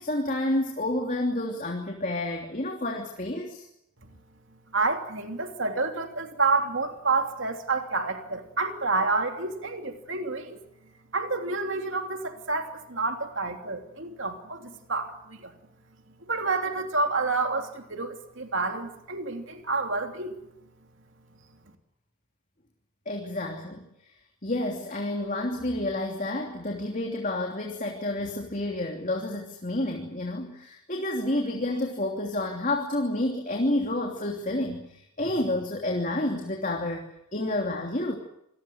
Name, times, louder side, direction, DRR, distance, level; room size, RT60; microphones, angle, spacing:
voice 1, 0.0-3.7 23.0-23.9 24.4-37.0 37.3-38.2, left 1 dB, 35° left, 1 dB, 3.1 m, -29 dB
voice 2, 4.7-10.6 11.1-15.5 16.3-20.3, right 3 dB, 60° right, 5 dB, 3.1 m, -29 dB
27.5 x 20.5 x 8.1 m, 0.77 s
head